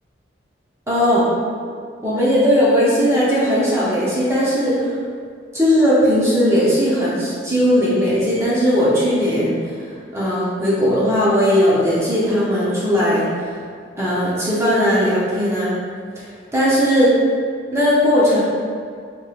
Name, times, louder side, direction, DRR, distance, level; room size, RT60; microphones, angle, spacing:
voice 1, 0.9-1.2 2.0-4.7 5.5-9.6 10.1-13.3 14.0-15.7 16.5-17.1 17.7-18.4, equal, 15° right, -8 dB, 0.6 m, -17 dB
3.1 x 2.9 x 2.4 m, 2.1 s
head